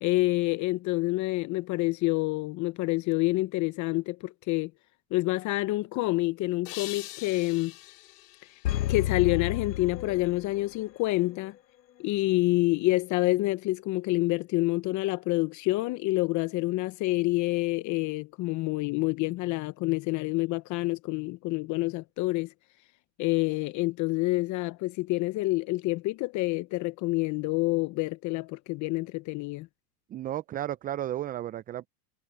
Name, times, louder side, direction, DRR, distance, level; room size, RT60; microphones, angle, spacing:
voice 1, 0.0-4.7 5.1-7.7 8.9-11.5 12.0-22.5 23.2-29.7, left 20 dB, 35° left, 0.9 m, -27 dB
sound 1, 6.7-9.8, left 19 dB, 65° left, 4.6 m, -44 dB
sound 2, 8.6-10.8 11.2-11.3, left 13 dB, 85° left, 1.4 m, -31 dB
voice 2, 30.1-31.9, right 12 dB, 20° right, 0.5 m, -33 dB
hypercardioid pair, 120°, 49 cm